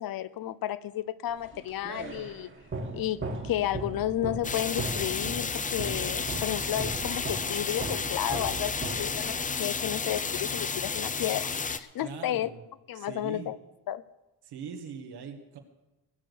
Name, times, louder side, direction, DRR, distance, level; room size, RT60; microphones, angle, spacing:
voice 1, 0.0-2.5 2.9-12.5 12.9-13.6 13.9-14.0, left 12 dB, 65° left, 16 dB, 0.7 m, -32 dB
sound 1, 1.4-9.6, right 3 dB, 30° right, 1.6 m, -38 dB
sound 2, 4.4-11.8, left 5 dB, 20° left, 0.5 m, -32 dB
voice 2, 12.0-12.6 12.9-13.5 14.4-15.6, right 6 dB, 85° right, 4 dB, 1.9 m, -41 dB
19.0 x 6.5 x 7.0 m, 1.0 s
cardioid pair, 125°, 39 cm